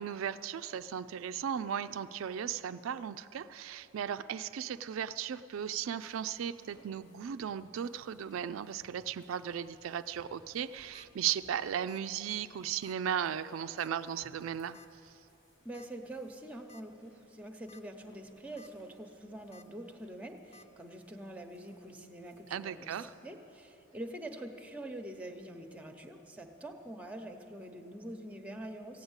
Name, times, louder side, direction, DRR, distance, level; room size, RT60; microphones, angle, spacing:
voice 1, 0.0-14.8 22.5-23.1, right 9 dB, 85° right, 12 dB, 0.3 m, -36 dB
sound 1, 5.6-23.9, equal, 85° left, 3.5 m, -67 dB
sound 2, 10.7-11.1 11.9-12.1 12.4-12.5 12.8-13.0 13.8-14.1 14.7-14.9 15.7-15.9 16.3-16.4 16.7-16.8 17.5-17.8 18.2-18.7 19.5-19.7 20.5-20.7, left 3 dB, 30° left, 0.4 m, -57 dB
voice 2, 15.6-29.0, right 1 dB, 5° right, 5 dB, 0.8 m, -45 dB
15.0 x 9.4 x 8.0 m, 2.9 s
head